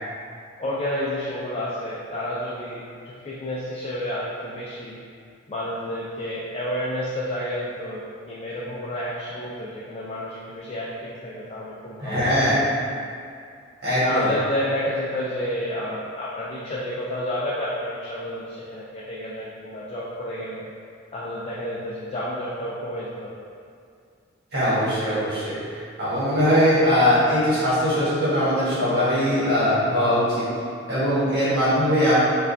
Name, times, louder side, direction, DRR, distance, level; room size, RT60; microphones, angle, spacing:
voice 1, 0.6-5.0 5.5-12.3 14.0-20.6 21.1-23.3, left 1 dB, 30° left, -7 dB, 0.4 m, -30 dB
voice 2, 12.0-12.6 13.8-14.3 24.5-25.5 26.0-30.4 30.9-32.1, equal, 55° right, -12 dB, 1.4 m, -21 dB
4.5 x 2.3 x 2.6 m, 2.3 s
head